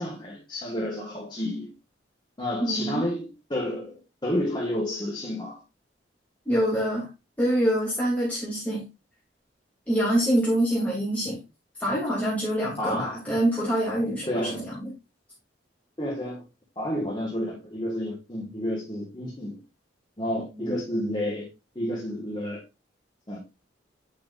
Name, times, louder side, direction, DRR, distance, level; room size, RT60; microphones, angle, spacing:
voice 1, 0.0-1.7 2.4-5.6 12.8-13.2 14.3-14.7 16.0-16.4 16.7-19.6 20.2-21.5 21.7-22.6 23.3-23.4, left 1 dB, 25° left, 1.7 m, -30 dB
voice 2, 2.6-3.0 6.5-7.1 7.4-8.9 9.9-11.4 11.8-14.7 20.5-20.8, right 1 dB, 10° left, 3.0 m, -25 dB
8.8 x 5.8 x 2.6 m
head